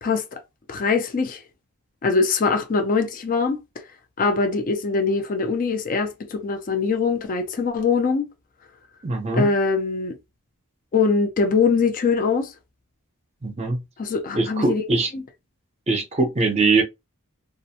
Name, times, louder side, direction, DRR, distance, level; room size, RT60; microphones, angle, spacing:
voice 1, 0.0-0.4 0.7-1.4 2.0-3.6 4.2-8.3 9.3-10.2 10.9-12.5 14.0-15.2, left 4 dB, 40° left, 0.4 m, -22 dB
voice 2, 9.0-9.5 13.4-13.8 14.3-15.1 15.9-16.8, right 3 dB, 30° right, 0.6 m, -21 dB
2.4 x 2.1 x 2.7 m
head